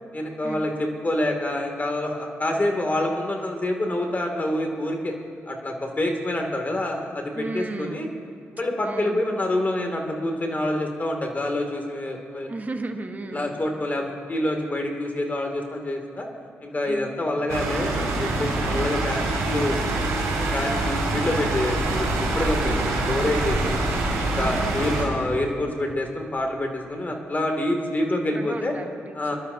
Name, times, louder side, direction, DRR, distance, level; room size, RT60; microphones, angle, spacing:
voice 1, 0.1-5.1 5.5-8.1 8.5-12.5 13.3-16.3 16.6-20.0 20.4-22.1 22.3-23.8 24.2-28.7 29.1-29.4, left 1 dB, 30° left, 2 dB, 2.5 m, -27 dB
voice 2, 7.3-8.1 8.8-9.2 12.5-13.5 16.8-17.1 22.6-22.9 24.4-24.8 28.3-29.3, right 2 dB, 35° right, 5 dB, 1.5 m, -35 dB
sound 1, 17.5-25.0, right 2 dB, 85° right, 3.2 m, -25 dB
23.5 x 12.0 x 2.8 m, 2.4 s
supercardioid pair, 50°, 5 cm